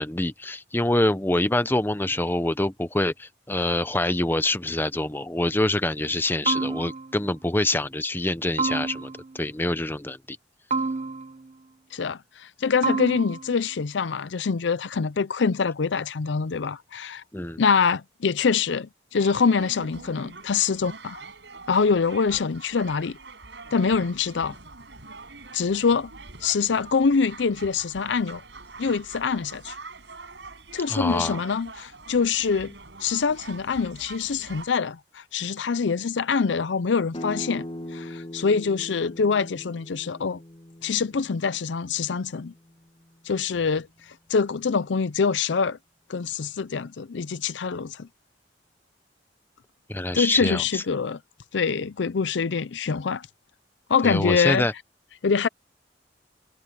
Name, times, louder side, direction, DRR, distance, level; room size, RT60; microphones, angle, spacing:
voice 1, 0.0-10.4 17.3-17.6 30.9-31.4 49.9-50.8 54.0-54.7, left 1 dB, 10° left, 0.8 m, -25 dB
sound 1, 6.5-7.3 8.6-9.4 10.7-11.5 12.8-13.6, right 4 dB, 40° right, 0.8 m, -29 dB
voice 2, 11.9-17.2 17.6-21.2 21.7-23.2 23.7-24.6 25.5-26.1 26.4-28.4 28.8-29.8 30.7-32.7 33.0-37.6 37.9-40.4 40.8-42.5 43.3-43.9 44.3-45.8 46.1-48.1 50.1-51.2 51.5-53.3 53.9-54.7 55.2-55.5, left 5 dB, 80° left, 0.5 m, -25 dB
sound 2, 19.2-34.7, right 3 dB, 75° right, 6.4 m, -44 dB
sound 3, 37.1-42.7, left 1 dB, 30° left, 1.4 m, -40 dB
head